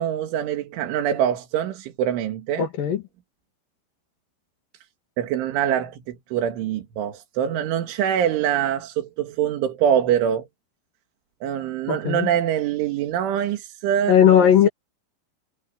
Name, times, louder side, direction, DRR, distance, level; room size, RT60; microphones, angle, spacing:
voice 1, 0.0-2.7 5.2-10.5 11.4-14.7, right 9 dB, 75° right, 4.4 m, -24 dB
voice 2, 2.6-3.0 11.9-12.3 14.1-14.7, left 9 dB, 55° left, 3.1 m, -17 dB
omnidirectional pair, 5.6 m